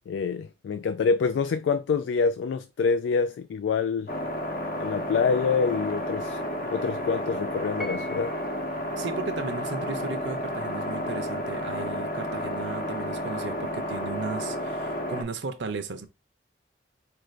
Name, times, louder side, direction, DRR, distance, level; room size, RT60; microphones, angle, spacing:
voice 1, 0.1-4.1 4.8-6.4 6.7-8.3, left 5 dB, 85° left, 0.3 m, -26 dB
sound 1, 4.1-15.2, equal, 50° left, 0.8 m, -31 dB
Piano, 7.8-8.7, left 1 dB, ahead, 0.3 m, -40 dB
voice 2, 9.0-16.1, right 4 dB, 80° right, 0.6 m, -35 dB
4.5 x 2.5 x 3.1 m
head